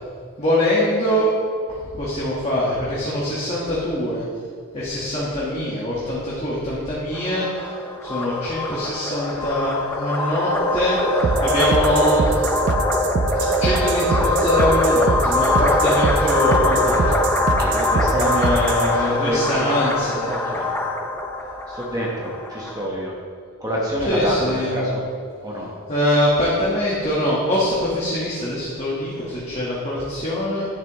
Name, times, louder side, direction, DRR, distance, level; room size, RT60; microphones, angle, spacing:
voice 1, 0.4-1.3 1.7-4.2 4.7-7.7 8.0-12.5 13.3-17.2 18.1-20.3 24.1-24.7 25.9-30.7, left 1 dB, 30° left, -7 dB, 1.4 m, -23 dB
sound 1, 7.1-22.9, left 1 dB, 10° left, 0.6 m, -23 dB
sound 2, 11.2-18.9, right 3 dB, 55° right, 0.4 m, -24 dB
voice 2, 17.6-19.7 20.2-20.7 21.7-23.1 23.6-25.0 25.4-25.7, equal, 15° right, -4 dB, 1.2 m, -27 dB
10.5 x 7.4 x 3.1 m, 2.1 s
head